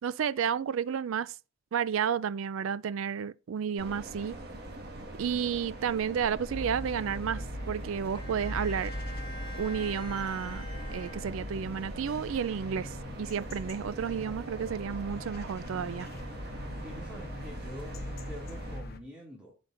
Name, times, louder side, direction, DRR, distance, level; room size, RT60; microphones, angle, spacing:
voice 1, 0.0-1.4 1.7-4.4 5.2-8.9 9.6-16.1, right 7 dB, 65° right, 0.3 m, -32 dB
sound 1, 3.8-18.8, right 1 dB, 45° right, 1.8 m, -43 dB
sound 2, 6.5-19.0, left 1 dB, 45° left, 0.8 m, -41 dB
Bowed string instrument, 8.1-11.8, left 1 dB, 20° left, 1.3 m, -46 dB
voice 2, 16.8-19.5, equal, 5° right, 2.3 m, -46 dB
14.5 x 5.3 x 2.5 m
head